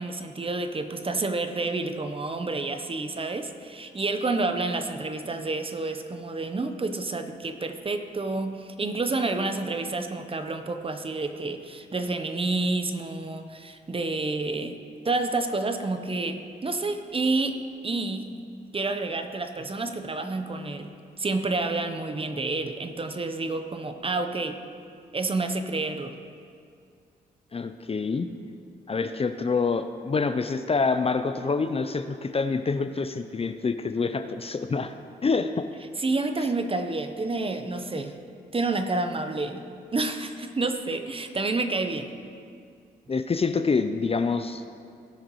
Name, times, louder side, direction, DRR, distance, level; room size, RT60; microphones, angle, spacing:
voice 1, 0.0-14.8 15.0-18.3 18.7-20.9 21.2-24.6 25.1-26.1 36.0-38.2 38.5-39.6 39.9-42.1, right 3 dB, 30° right, 8 dB, 0.8 m, -29 dB
voice 2, 27.5-28.3 28.9-34.9 35.2-35.6 43.1-44.7, left 4 dB, 35° left, 9 dB, 0.5 m, -26 dB
18.0 x 6.5 x 3.1 m, 2.3 s
supercardioid pair, 60°, 18 cm